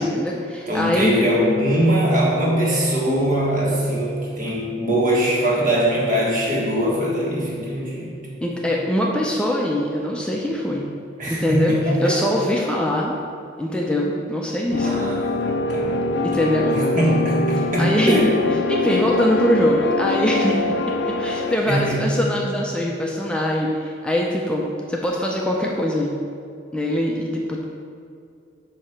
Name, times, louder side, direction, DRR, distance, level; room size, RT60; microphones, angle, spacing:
voice 1, 0.0-1.2 8.4-10.9 11.3-13.1 13.6-14.9 16.2-16.7 17.8-18.3 18.7-20.6 21.2-26.2 26.7-27.6, left 1 dB, 5° left, -2 dB, 0.4 m, -22 dB
voice 2, 0.7-8.4 11.2-12.2 14.8-18.2 21.6-22.0, right 1 dB, 50° right, -4 dB, 1.5 m, -22 dB
sound 1, 14.7-21.6, left 2 dB, 70° left, 0.4 m, -23 dB
7.7 x 2.8 x 5.6 m, 2.5 s
head